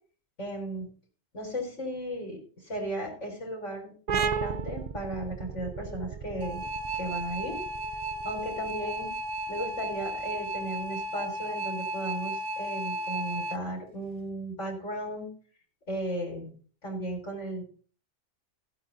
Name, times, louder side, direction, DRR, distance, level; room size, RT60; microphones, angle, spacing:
voice 1, 0.4-0.9 1.3-6.6 6.9-7.6 8.2-9.1 9.5-15.3 15.9-16.5 16.8-17.6, right 1 dB, 85° left, 0 dB, 4.9 m, -35 dB
sound 1, 4.1-11.4, right 6 dB, 50° right, 0.6 m, -36 dB
sound 2, 6.4-13.6, right 1 dB, 80° right, 1.2 m, -34 dB
15.5 x 8.8 x 4.1 m, 0.42 s
omnidirectional pair, 1.2 m